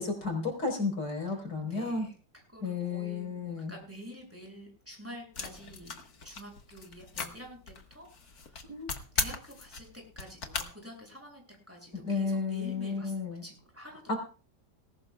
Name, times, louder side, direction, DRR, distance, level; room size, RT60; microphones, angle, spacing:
voice 1, 0.0-2.1 2.6-3.7 8.7-8.9 11.9-13.4 14.1-14.2, left 4 dB, 85° left, 1 dB, 5.2 m, -32 dB
voice 2, 1.6-2.1 2.5-6.0 6.2-8.6 9.1-14.2, equal, 10° right, 0 dB, 7.1 m, -48 dB
sound 1, 5.4-10.7, left 4 dB, 60° left, 2.1 m, -38 dB
20.5 x 18.0 x 2.4 m, 0.37 s
omnidirectional pair, 1.8 m